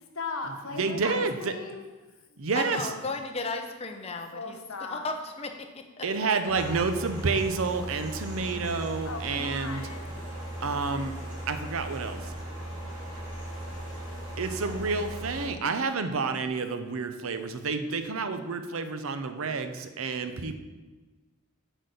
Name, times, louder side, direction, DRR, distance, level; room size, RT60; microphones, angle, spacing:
voice 1, 0.1-1.9 2.3-2.4 4.3-5.1 6.1-6.8 9.0-10.2, left 3 dB, 75° left, 4 dB, 1.1 m, -38 dB
voice 2, 0.7-1.5 2.4-2.9 6.0-9.8 10.6-11.1 11.5-12.3 14.4-20.5, right 4 dB, 75° right, 9 dB, 0.6 m, -29 dB
voice 3, 2.5-4.6 4.9-6.1, left 3 dB, 30° left, 5 dB, 0.7 m, -35 dB
sound 1, 6.5-15.5, right 1 dB, 20° right, 2.3 m, -38 dB
8.0 x 4.1 x 6.6 m, 1.2 s
head